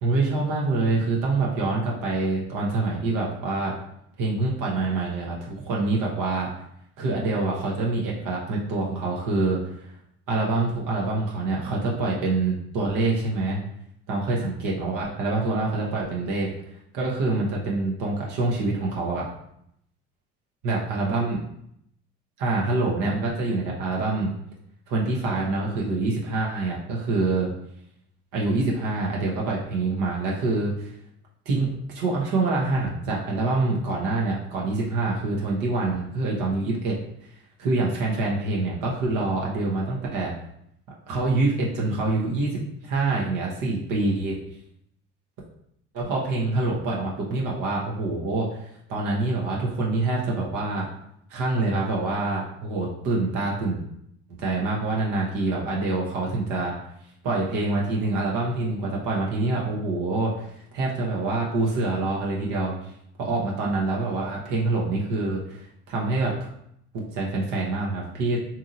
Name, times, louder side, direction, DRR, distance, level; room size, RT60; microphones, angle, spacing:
voice 1, 0.0-3.7 4.2-6.5 7.0-9.9 10.3-13.6 14.1-16.5 16.9-19.3 20.6-21.4 22.4-24.3 24.9-27.5 28.3-30.9 31.5-37.0 37.6-40.3 41.1-44.4 45.9-50.9 51.3-53.8 54.4-56.7 57.2-60.5 60.7-62.9 63.2-66.3 67.1-68.4, right 3 dB, 65° right, -3 dB, 0.8 m, -26 dB
2.8 x 2.7 x 2.5 m, 0.73 s
hypercardioid pair, 70°, 33 cm